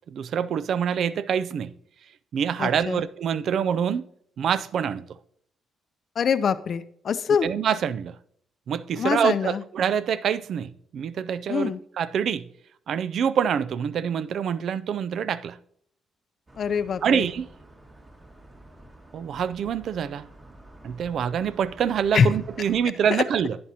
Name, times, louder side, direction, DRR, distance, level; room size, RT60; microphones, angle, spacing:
voice 1, 0.1-1.7 2.3-4.1 4.4-5.1 7.4-8.2 8.7-12.5 12.9-15.6 17.0-17.5 19.1-20.3 20.8-23.6, right 8 dB, 65° right, 0.4 m, -26 dB
voice 2, 2.6-3.0 6.2-7.5 9.0-9.6 11.5-11.8 16.6-17.3 22.1-22.3 23.1-23.2, left 6 dB, 55° left, 0.5 m, -24 dB
sound 1, 16.5-22.8, right 1 dB, 25° right, 1.9 m, -49 dB
11.0 x 9.4 x 2.8 m
cardioid pair, 90°, 0 cm